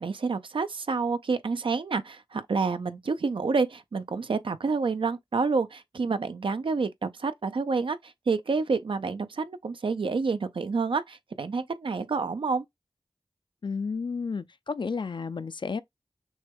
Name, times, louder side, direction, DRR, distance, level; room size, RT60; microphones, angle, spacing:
voice 1, 0.0-12.6, right 4 dB, 80° right, 0.5 m, -28 dB
voice 2, 13.6-15.8, left 5 dB, 65° left, 0.4 m, -32 dB
6.2 x 2.2 x 3.4 m
wide cardioid pair, 40°, 9 cm